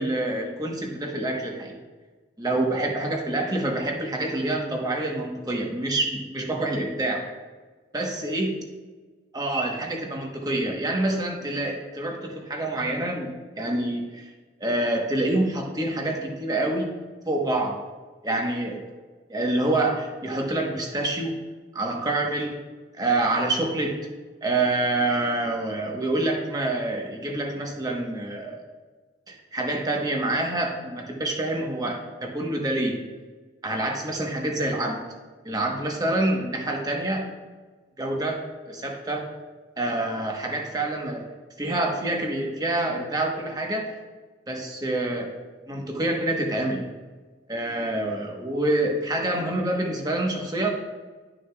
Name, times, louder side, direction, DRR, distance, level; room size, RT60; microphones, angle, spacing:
voice 1, 0.0-1.8 2.4-7.2 7.9-8.6 9.3-13.3 13.6-14.3 14.6-16.9 17.3-17.8 18.2-18.8 19.3-21.4 21.7-22.6 22.9-24.0 24.4-28.6 29.3-33.0 33.6-35.0 35.4-37.3 38.0-38.4 38.7-39.3 39.8-41.3 41.6-43.9 44.5-45.3 45.7-46.9 47.5-50.7, right 2 dB, 20° right, 1 dB, 1.0 m, -27 dB
11.5 x 6.3 x 2.3 m, 1.4 s
head